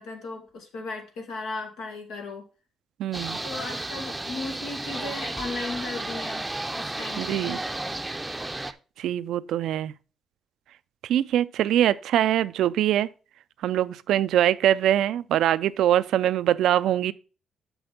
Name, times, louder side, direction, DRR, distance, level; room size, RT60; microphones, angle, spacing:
voice 1, 0.0-2.4 3.4-7.6, left 3 dB, 90° left, 1.9 m, -36 dB
voice 2, 3.0-3.4 7.2-7.6 9.0-9.9 11.0-13.1 13.6-17.1, right 11 dB, 80° right, 0.4 m, -23 dB
sound 1, 3.1-8.7, right 2 dB, 10° right, 0.6 m, -33 dB
6.2 x 6.0 x 5.0 m
cardioid pair, 90°, 0 cm